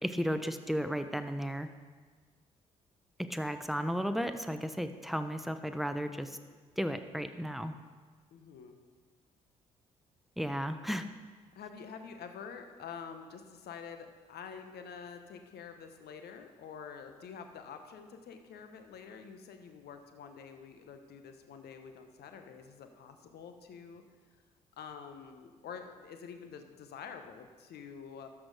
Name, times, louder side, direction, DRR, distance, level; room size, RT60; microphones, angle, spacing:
voice 1, 0.0-1.7 3.2-6.4 6.8-7.7 10.4-11.0, equal, ahead, 9 dB, 0.9 m, -34 dB
voice 2, 8.3-8.8 11.5-24.0 24.8-28.3, left 6 dB, 60° left, 7 dB, 1.1 m, -47 dB
12.5 x 6.2 x 4.9 m, 1.5 s
hypercardioid pair, 45°, 18 cm